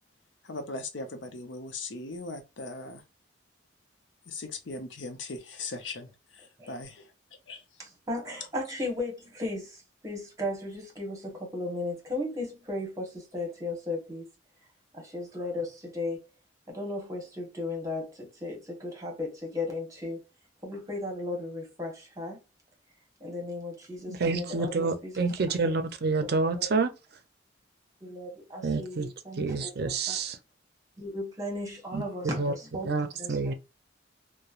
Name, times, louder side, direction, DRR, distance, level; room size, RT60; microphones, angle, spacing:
voice 1, 0.4-3.0 4.3-7.1 7.5-7.6, left 3 dB, 70° left, 0.7 m, -39 dB
voice 2, 7.8-14.3 14.9-16.2 16.7-20.2 20.6-22.4 23.2-25.3 26.2-26.3 26.5-26.7 28.0-30.2 31.0-33.5, left 2 dB, 15° right, 1.1 m, -36 dB
voice 3, 24.1-26.9 28.6-29.1 29.4-30.4 31.9-32.0 32.4-32.5 32.8-33.5, right 4 dB, 55° right, 0.5 m, -28 dB
3.0 x 2.1 x 2.4 m
head